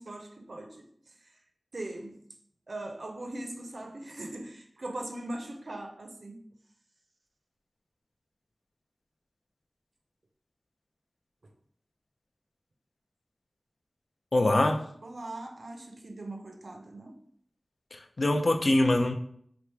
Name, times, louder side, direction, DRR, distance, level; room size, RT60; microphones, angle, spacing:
voice 1, 0.0-1.4 1.7-2.2 2.7-6.4 11.4-11.5 15.0-17.2, right 1 dB, 70° right, 0.6 m, -40 dB
voice 2, 14.3-14.8 17.9-19.1, left 1 dB, 65° left, 0.4 m, -24 dB
3.4 x 2.4 x 4.4 m
wide cardioid pair, 60°, 0 cm